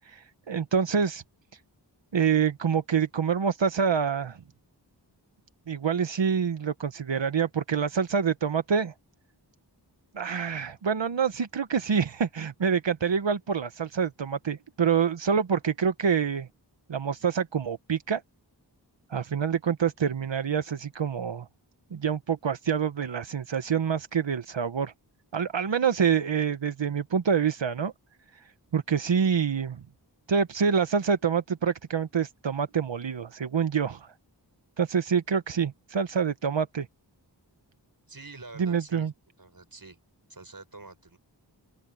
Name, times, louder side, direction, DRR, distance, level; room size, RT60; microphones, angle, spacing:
voice 1, 0.1-1.2 2.1-4.4 5.7-8.9 10.1-16.5 16.9-18.2 19.1-21.5 21.9-24.9 25.3-27.9 28.7-29.8 30.3-34.1 34.8-36.9 38.6-39.1, right 6 dB, 85° right, 0.9 m, -26 dB
voice 2, 38.1-39.1 39.4-40.0 40.3-41.2, right 3 dB, 50° right, 5.4 m, -46 dB
open air
wide cardioid pair, 40°, 43 cm